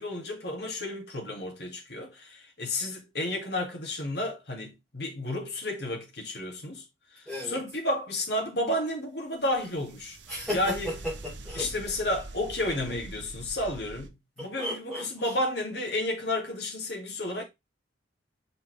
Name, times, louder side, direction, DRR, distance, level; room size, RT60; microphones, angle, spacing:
voice 1, 0.0-6.8 7.1-10.2 10.5-10.9 11.6-17.4, left 1 dB, 60° left, 2.3 m, -32 dB
voice 2, 7.3-7.6 10.3-11.7 14.4-15.4, left 1 dB, ahead, 3.0 m, -35 dB
sound 1, 9.5-14.1, right 2 dB, 75° right, 0.9 m, -44 dB
5.8 x 5.1 x 3.3 m
head